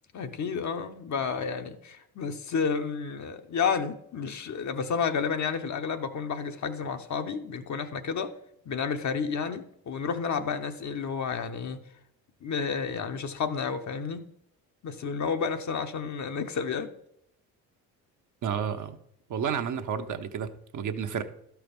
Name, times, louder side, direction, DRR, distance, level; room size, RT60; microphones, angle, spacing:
voice 1, 0.1-8.3 8.6-11.8 12.4-14.2 14.8-16.9, left 6 dB, 50° left, 7 dB, 1.0 m, -31 dB
voice 2, 18.4-19.0 19.3-21.2, right 7 dB, 50° right, 6 dB, 1.0 m, -31 dB
12.0 x 4.7 x 5.3 m, 0.74 s
supercardioid pair, 65°, 38 cm